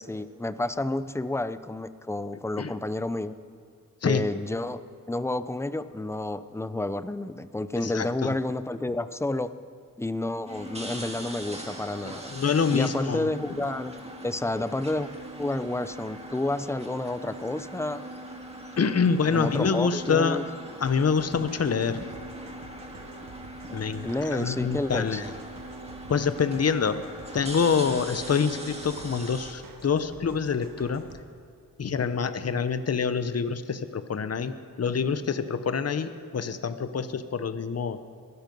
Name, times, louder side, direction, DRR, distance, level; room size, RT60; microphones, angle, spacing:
voice 1, 0.0-3.4 4.0-4.8 5.1-9.5 10.0-12.3 12.7-15.1 15.4-18.0 19.3-20.4 24.0-25.2, left 2 dB, 10° left, 13 dB, 0.6 m, -30 dB
voice 2, 7.8-8.3 12.0-13.3 18.8-20.4 20.8-22.1 23.7-25.3 26.1-27.0 27.3-31.0 31.8-38.0, left 6 dB, 50° left, 11 dB, 0.9 m, -26 dB
sound 1, 10.5-29.5, right 1 dB, 20° right, 2.1 m, -41 dB
sound 2, 20.8-31.2, right 4 dB, 85° right, 1.7 m, -49 dB
21.5 x 12.5 x 5.4 m, 2.3 s
wide cardioid pair, 80°, 33 cm